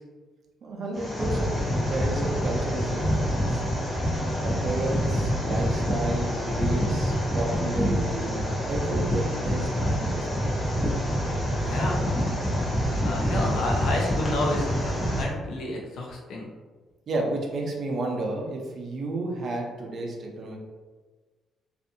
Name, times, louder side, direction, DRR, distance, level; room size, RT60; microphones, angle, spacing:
voice 1, 0.6-3.6 4.4-10.5 17.1-20.6, right 2 dB, 55° right, 0 dB, 0.6 m, -32 dB
sound 1, 0.9-15.2, equal, 30° left, 1.0 m, -26 dB
voice 2, 11.7-12.0 13.0-16.5, left 2 dB, 75° left, 0 dB, 0.6 m, -30 dB
2.5 x 2.4 x 2.7 m, 1.3 s
cardioid pair, 90°, 0 cm